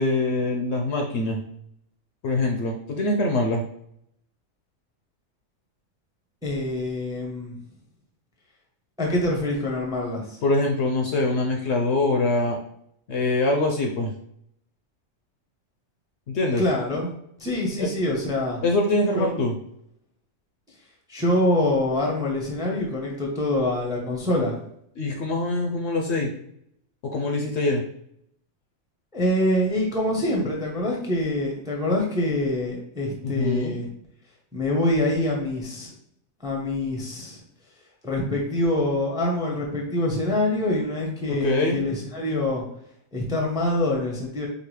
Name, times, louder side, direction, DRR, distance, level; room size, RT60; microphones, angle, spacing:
voice 1, 0.0-1.4 2.2-3.6 10.4-12.6 13.1-14.1 16.3-16.6 17.8-17.9 18.6-19.5 25.0-26.3 27.0-27.8 33.2-33.7 41.3-41.8, left 2 dB, 65° left, 1 dB, 0.8 m, -24 dB
voice 2, 6.4-7.6 9.0-10.4 16.6-17.1 17.4-18.6 19.1-19.3 21.1-24.6 29.1-33.9 34.5-35.9 36.4-37.4 38.0-42.6 43.1-44.5, left 1 dB, 5° right, -1 dB, 0.6 m, -25 dB
5.1 x 2.3 x 3.1 m, 0.72 s
omnidirectional pair, 1.4 m